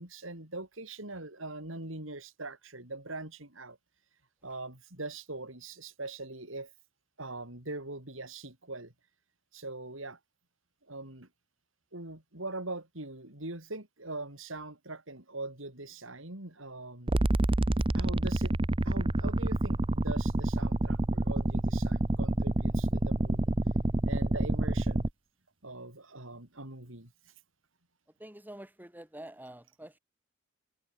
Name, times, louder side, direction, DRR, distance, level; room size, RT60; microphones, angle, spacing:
voice 1, 0.0-3.8 4.4-6.7 7.2-8.9 9.5-10.2 10.9-11.3 11.9-17.3 17.9-18.6 18.8-23.5 24.1-25.1 25.6-27.1, right 2 dB, 70° right, 5.9 m, -42 dB
sound 1, 17.1-25.1, right 1 dB, 25° right, 0.8 m, -28 dB
voice 2, 28.2-30.0, right 1 dB, 10° right, 6.0 m, -47 dB
head